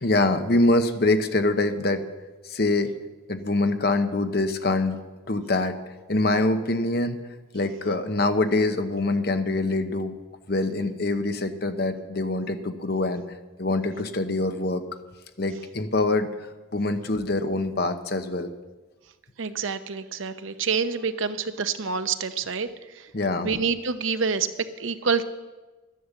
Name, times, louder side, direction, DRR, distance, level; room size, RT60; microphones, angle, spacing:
voice 1, 0.0-2.0 2.5-2.9 3.3-5.0 5.3-5.8 6.1-7.2 7.5-10.2 10.5-13.2 13.6-14.8 15.4-16.3 16.7-18.5 23.1-23.5, left 2 dB, 50° left, 8 dB, 0.9 m, -24 dB
voice 2, 19.4-22.7 23.0-23.1 23.4-24.5 24.8-25.2, right 5 dB, 80° right, 11 dB, 0.8 m, -27 dB
13.0 x 10.0 x 7.3 m, 1.2 s
head